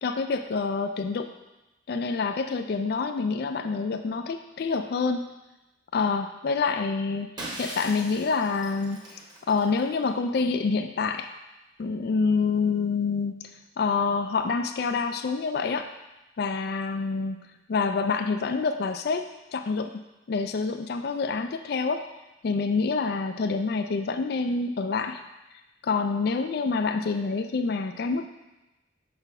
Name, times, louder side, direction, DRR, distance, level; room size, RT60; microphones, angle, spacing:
voice 1, 0.0-1.3 1.9-5.3 5.9-7.3 7.6-9.0 9.5-11.3 11.8-13.3 13.8-15.9 16.4-17.4 17.7-20.0 20.3-22.0 22.4-25.2 25.8-28.3, left 4 dB, 55° left, 7 dB, 0.4 m, -27 dB
Shatter, 7.4-10.1, right 1 dB, 20° right, 1.1 m, -40 dB
5.9 x 4.0 x 5.4 m, 1.0 s
head